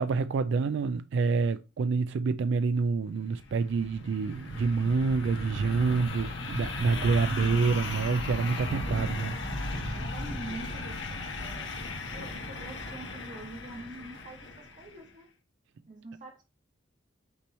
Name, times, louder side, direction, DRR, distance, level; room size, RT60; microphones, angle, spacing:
voice 1, 0.0-9.3, right 4 dB, 65° right, 0.3 m, -27 dB
sound 1, 3.2-14.9, left 2 dB, 65° left, 1.6 m, -36 dB
voice 2, 6.9-7.9 8.7-9.5 9.9-11.7 12.1-15.3 15.9-16.4, right 1 dB, 40° right, 1.2 m, -45 dB
8.5 x 3.0 x 4.1 m
head